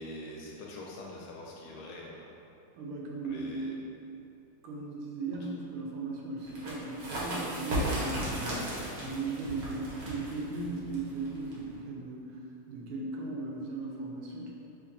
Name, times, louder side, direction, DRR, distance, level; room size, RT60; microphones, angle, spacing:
voice 1, 0.0-2.3 3.2-3.7, left 1 dB, 80° left, -3 dB, 1.4 m, -44 dB
voice 2, 2.8-3.8 4.6-12.4 12.7-14.5, right 3 dB, 85° right, -2 dB, 1.5 m, -37 dB
sound 1, 6.4-11.8, right 1 dB, 60° right, 1.0 m, -36 dB
3.8 x 2.8 x 2.6 m, 2.7 s
omnidirectional pair, 2.3 m